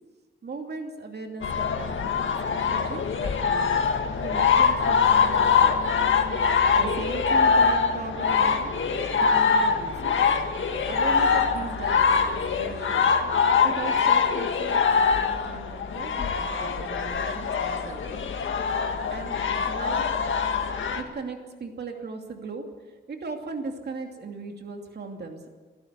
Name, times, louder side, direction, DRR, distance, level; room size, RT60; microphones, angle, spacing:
voice 1, 0.4-6.1 6.7-8.7 9.1-10.4 10.9-13.1 13.6-18.3 19.1-19.3 19.7-20.1 20.9-25.5, right 4 dB, 55° right, 3 dB, 2.7 m, -38 dB
sound 1, 1.4-21.0, left 5 dB, 80° left, 1.7 m, -23 dB
30.0 x 11.5 x 8.1 m, 1.4 s
wide cardioid pair, 165°, 20 cm